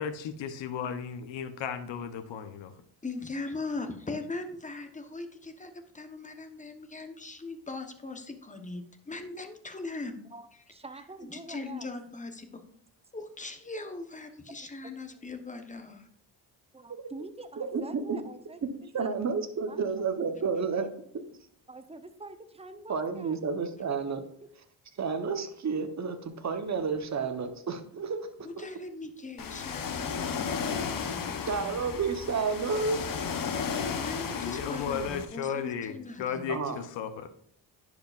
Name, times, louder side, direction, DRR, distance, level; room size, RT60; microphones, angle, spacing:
voice 1, 0.0-2.7 34.4-37.3, left 7 dB, 75° left, 10 dB, 1.0 m, -35 dB
voice 2, 3.0-10.2 11.3-12.6 13.1-16.1 28.4-31.9 34.0-36.6, left 3 dB, 15° left, 6 dB, 1.1 m, -40 dB
voice 3, 10.3-11.9 14.8-15.3 16.7-19.2 19.7-20.0 21.7-23.4, right 2 dB, 15° right, 9 dB, 0.8 m, -46 dB
voice 4, 17.7-18.2 18.9-20.9 22.9-24.3 25.0-28.3 28.6-28.7 31.5-33.0 36.5-36.8, right 5 dB, 40° right, 8 dB, 1.0 m, -30 dB
Ocean, 29.4-35.2, left 6 dB, 50° left, 1.0 m, -34 dB
10.5 x 5.1 x 2.5 m, 0.66 s
cardioid pair, 85°, 44 cm